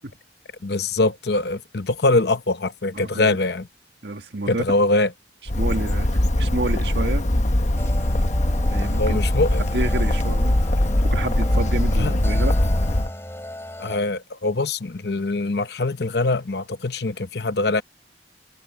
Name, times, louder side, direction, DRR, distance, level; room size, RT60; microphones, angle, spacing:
voice 1, 0.6-3.7 4.5-5.1 9.0-9.6 12.0-12.2 13.8-17.8, left 2 dB, 65° left, 0.9 m, -23 dB
voice 2, 2.9-3.4 4.0-4.6 5.6-6.1 6.4-7.3 8.7-9.2 9.6-10.6 11.0-12.6, right 2 dB, 65° right, 1.8 m, -29 dB
Bird, 5.5-13.1, left 1 dB, 40° left, 1.1 m, -21 dB
sound 1, 7.7-14.0, left 1 dB, 15° left, 6.8 m, -36 dB
head